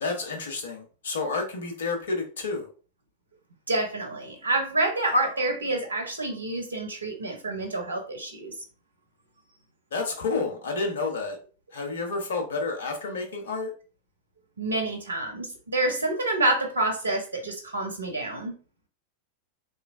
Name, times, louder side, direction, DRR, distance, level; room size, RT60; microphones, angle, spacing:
voice 1, 0.0-2.7 9.9-11.4 11.7-13.7, left 3 dB, 65° left, 0.7 m, -30 dB
voice 2, 3.7-8.5 14.6-18.5, right 2 dB, 75° right, 0.8 m, -28 dB
2.9 x 2.4 x 2.4 m
figure-of-eight pair, 90°, 0 cm